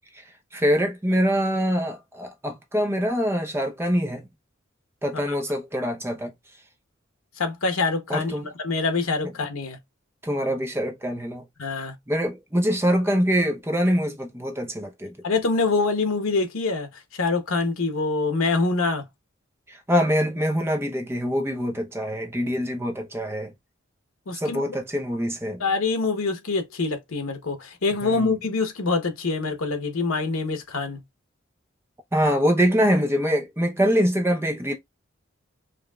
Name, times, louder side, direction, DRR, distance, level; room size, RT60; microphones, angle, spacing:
voice 1, 0.5-4.3 5.0-6.3 8.1-8.4 10.2-11.4 12.1-15.1 19.7-23.5 24.3-25.6 28.0-28.4 32.1-34.7, equal, 10° right, 0.7 m, -24 dB
voice 2, 7.4-9.8 11.6-11.9 15.2-19.0 24.3-24.6 25.6-31.0, left 3 dB, 90° left, 0.9 m, -25 dB
5.1 x 2.7 x 2.3 m
head